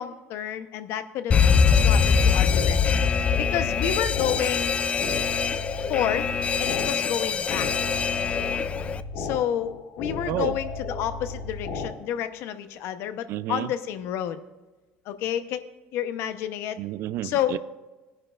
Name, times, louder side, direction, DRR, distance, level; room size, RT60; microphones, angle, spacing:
voice 1, 0.0-1.4 1.8-4.7 5.9-6.3 6.6-7.7 9.2-14.4 15.1-15.6 15.9-16.8 17.2-17.6, left 10 dB, 70° left, 11 dB, 0.8 m, -30 dB
Alarm, 1.3-9.0, left 6 dB, 25° left, 0.4 m, -23 dB
sound 1, 2.1-11.9, left 3 dB, 90° left, 2.8 m, -35 dB
voice 2, 10.3-10.6 13.3-13.7 16.8-17.6, right 13 dB, 60° right, 17 dB, 0.4 m, -30 dB
18.5 x 10.5 x 2.5 m, 1.1 s
cardioid pair, 130°, 4 cm